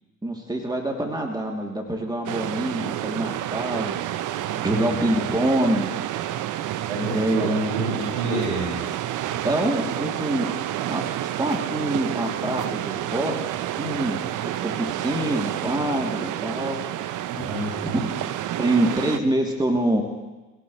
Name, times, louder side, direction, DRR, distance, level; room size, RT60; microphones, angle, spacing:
voice 1, 0.2-3.9 4.6-5.9 7.1-7.5 9.4-10.5 10.9-13.4 13.7-14.2 14.6-16.8 17.8-18.0 18.6-20.0, right 1 dB, 10° right, 0 dB, 3.1 m, -25 dB
sound 1, 2.2-19.2, right 12 dB, 55° right, 0.9 m, -29 dB
voice 2, 4.4-4.8 6.9-8.8 9.2-9.4 17.3-18.0, right 2 dB, 80° right, -7 dB, 5.7 m, -28 dB
24.5 x 17.0 x 3.3 m, 1.2 s
hypercardioid pair, 55°, 36 cm